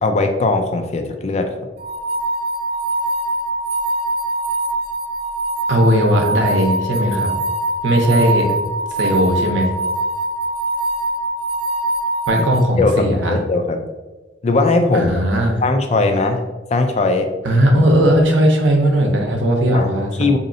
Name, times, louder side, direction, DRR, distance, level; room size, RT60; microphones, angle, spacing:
voice 1, 0.0-1.5 12.8-13.8 14.4-15.1 15.6-16.4 16.7-17.3 19.7-19.9 20.2-20.4, left 3 dB, 35° left, 6 dB, 0.3 m, -18 dB
sound 1, 1.8-12.6, right 1 dB, 50° right, 0.3 m, -23 dB
voice 2, 5.7-7.3 7.8-8.6 9.0-9.7 12.3-13.4 14.9-15.6 17.4-20.3, equal, 85° right, 2 dB, 0.7 m, -17 dB
4.0 x 2.7 x 2.6 m, 1.2 s
head